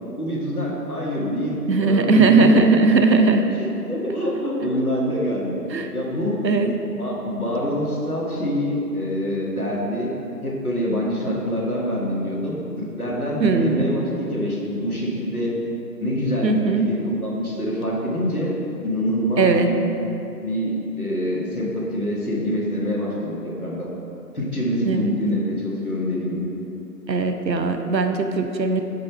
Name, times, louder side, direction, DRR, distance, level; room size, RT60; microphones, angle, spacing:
voice 1, 0.2-2.7 3.0-3.1 3.6-5.6 5.9-6.4 6.8-10.1 10.4-15.5 16.0-18.5 18.8-19.7 20.4-23.9 24.3-26.5, equal, 60° left, -4 dB, 1.4 m, -25 dB
voice 2, 1.7-3.4 5.7-5.9 6.4-6.8 13.4-13.9 16.4-16.8 19.4-19.7 24.8-25.1 27.1-28.8, right 3 dB, 85° right, 6 dB, 0.7 m, -18 dB
5.4 x 4.2 x 5.4 m, 2.9 s
figure-of-eight pair, 175°, 50 cm